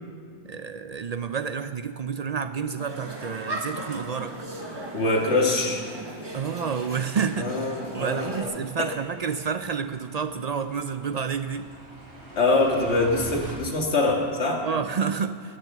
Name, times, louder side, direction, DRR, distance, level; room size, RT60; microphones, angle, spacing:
voice 1, 0.4-4.3 5.5-5.6 6.3-7.5 7.9-11.7 14.6-15.6, right 6 dB, 55° right, 9 dB, 0.4 m, -29 dB
sound 1, 2.8-8.4, right 1 dB, 25° right, 1.5 m, -37 dB
sound 2, 4.0-13.6, right 2 dB, 85° right, 3.6 m, -46 dB
voice 2, 4.9-5.8 7.3-8.5 8.8-8.9 12.4-14.6, left 2 dB, 80° left, 0 dB, 2.0 m, -24 dB
20.0 x 6.7 x 7.3 m, 2.2 s
omnidirectional pair, 1.1 m